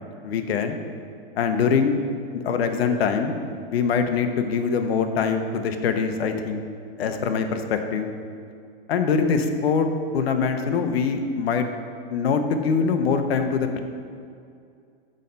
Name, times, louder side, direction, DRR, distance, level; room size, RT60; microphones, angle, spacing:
voice 1, 0.2-0.8 1.3-2.0 2.3-3.3 3.7-6.6 7.0-8.1 8.9-9.9 10.1-11.7 12.1-13.8, left 5 dB, 80° left, 6 dB, 0.9 m, -23 dB
6.4 x 5.4 x 5.3 m, 2.3 s
supercardioid pair, 175°, 30 cm